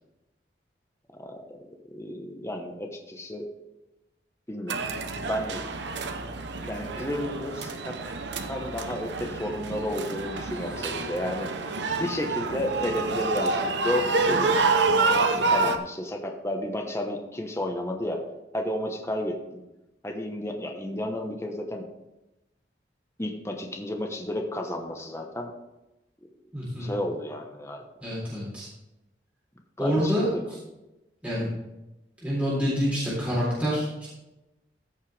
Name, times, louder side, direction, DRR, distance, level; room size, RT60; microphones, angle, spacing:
voice 1, 1.2-1.6 1.9-3.5 4.5-4.8 5.2-5.8 6.6-8.0 8.5-11.5 12.0-14.6 15.1-18.2 18.5-19.6 20.0-21.8 23.2-25.5 26.8-27.8 29.8-30.6, left 1 dB, 15° left, 3 dB, 1.1 m, -32 dB
sound 1, 4.7-15.8, right 3 dB, 75° right, 0.8 m, -28 dB
voice 2, 26.5-26.9 28.0-28.7 29.8-30.3 31.2-31.5 32.2-34.1, equal, 10° right, -8 dB, 3.5 m, -27 dB
14.5 x 6.6 x 3.4 m, 0.97 s
head